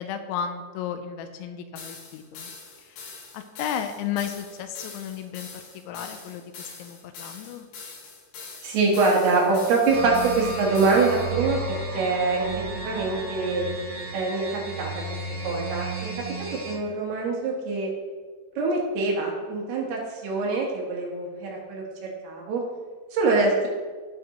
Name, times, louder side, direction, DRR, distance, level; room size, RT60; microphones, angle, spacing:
voice 1, 0.0-2.5 2.8-7.7, left 8 dB, 85° left, 8 dB, 2.9 m, -34 dB
sound 1, 1.8-11.3, left 4 dB, 65° left, 3.0 m, -43 dB
voice 2, 8.6-11.6 11.9-12.5 12.7-13.6 14.1-14.9 15.4-16.1 16.5-17.9 18.6-22.6 23.1-23.7, right 3 dB, 70° right, -2 dB, 2.9 m, -24 dB
sound 2, 9.9-16.7, right 3 dB, 50° right, 3.7 m, -33 dB
15.5 x 6.0 x 2.9 m, 1.5 s
omnidirectional pair, 5.4 m